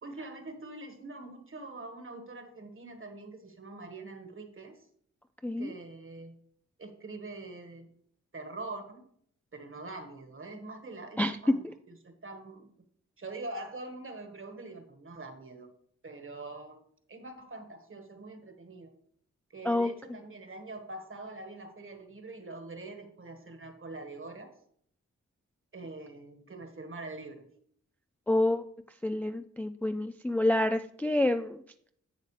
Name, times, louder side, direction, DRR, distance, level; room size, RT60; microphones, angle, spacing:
voice 1, 0.0-4.9 5.6-6.3 6.8-7.9 8.3-9.1 9.5-11.6 12.0-12.7 13.2-15.7 16.0-16.8 17.1-18.9 19.5-24.5 25.7-27.5, right 2 dB, 40° right, 6 dB, 1.6 m, -44 dB
voice 2, 28.3-28.6 29.0-31.6, left 1 dB, 5° left, 8 dB, 0.3 m, -28 dB
10.5 x 7.9 x 3.3 m, 0.65 s
wide cardioid pair, 100°, 31 cm